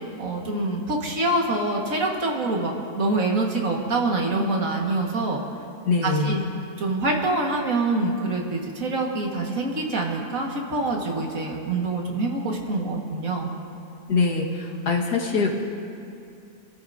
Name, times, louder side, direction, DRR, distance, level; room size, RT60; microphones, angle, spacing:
voice 1, 0.2-5.4 6.0-6.4 6.8-13.5, right 2 dB, 60° right, 0 dB, 2.0 m, -25 dB
voice 2, 5.9-6.4 14.1-15.5, left 4 dB, 85° left, -1 dB, 2.1 m, -23 dB
26.0 x 13.5 x 2.7 m, 2.6 s
omnidirectional pair, 1.6 m